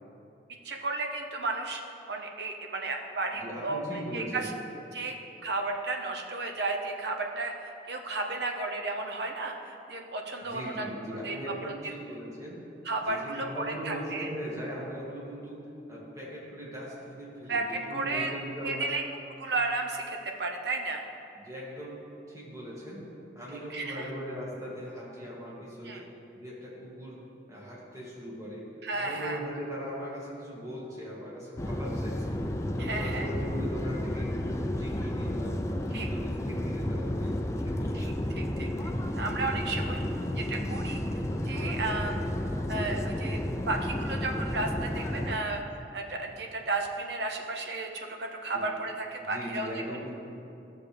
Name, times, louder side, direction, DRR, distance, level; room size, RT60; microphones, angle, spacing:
voice 1, 0.6-1.8 2.1-3.8 4.1-4.5 4.9-5.2 5.4-10.8 11.2-11.4 11.6-11.9 12.8-14.3 17.5-18.3 18.6-19.0 19.4-21.1 23.7-24.1 25.8-26.0 28.8-29.4 32.8-33.3 35.9-36.1 37.9-40.0 40.4-42.2 42.7-43.4 43.7-45.6 45.9-49.7, right 3 dB, 70° right, 2 dB, 0.8 m, -33 dB
voice 2, 3.3-4.5 10.5-12.7 13.0-19.0 21.4-32.4 32.8-38.2 48.5-48.7 49.2-50.1, equal, 20° right, -7 dB, 1.8 m, -40 dB
sound 1, 31.6-45.4, left 1 dB, 15° left, 0.4 m, -32 dB
13.0 x 6.7 x 3.4 m, 2.7 s
head